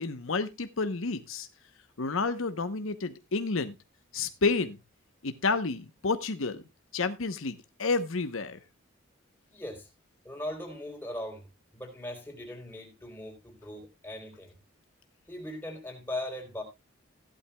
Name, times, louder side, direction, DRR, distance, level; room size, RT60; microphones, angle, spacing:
voice 1, 0.0-1.5 2.0-3.7 4.1-4.8 5.2-6.6 6.9-8.6, left 4 dB, 75° left, 1.0 m, -30 dB
voice 2, 9.5-9.9 10.2-11.5 11.7-14.5 15.3-16.6, left 1 dB, 10° left, 3.6 m, -39 dB
15.5 x 11.5 x 2.3 m
head